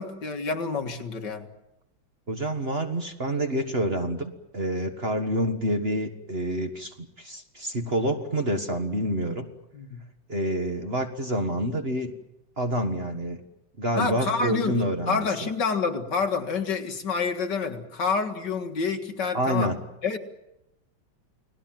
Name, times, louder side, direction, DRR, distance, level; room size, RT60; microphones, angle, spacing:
voice 1, 0.0-1.5 9.7-10.0 14.0-19.7 20.0-20.2, left 4 dB, 60° left, 5 dB, 2.4 m, -28 dB
voice 2, 2.3-9.5 10.3-12.1 12.6-13.4 13.8-15.5 19.3-19.8, right 1 dB, 30° right, 5 dB, 1.7 m, -28 dB
30.0 x 19.0 x 7.6 m, 0.89 s
omnidirectional pair, 2.1 m